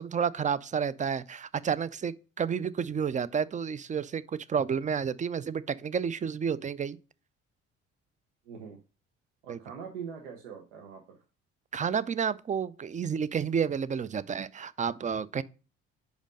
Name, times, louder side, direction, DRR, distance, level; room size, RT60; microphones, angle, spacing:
voice 1, 0.0-4.2 4.5-7.0 9.5-9.6 11.7-15.4, right 7 dB, 20° right, 0.4 m, -30 dB
voice 2, 8.4-8.8 9.4-11.2, right 7 dB, 80° right, 0.9 m, -43 dB
5.1 x 5.1 x 5.2 m
hypercardioid pair, 50°, 35 cm